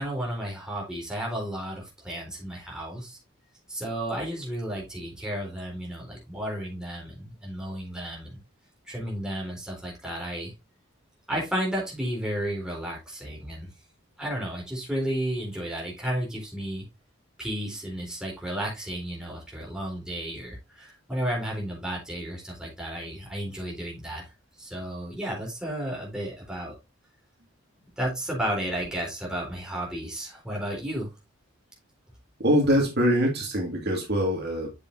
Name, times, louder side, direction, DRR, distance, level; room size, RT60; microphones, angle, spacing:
voice 1, 0.0-3.2 3.7-8.4 8.8-10.5 11.3-13.7 14.2-16.9 17.4-24.3 24.6-26.8 28.0-31.1, right 1 dB, 5° right, 4.0 m, -33 dB
voice 2, 32.4-34.7, equal, 50° right, 2.3 m, -23 dB
8.5 x 6.7 x 2.8 m
head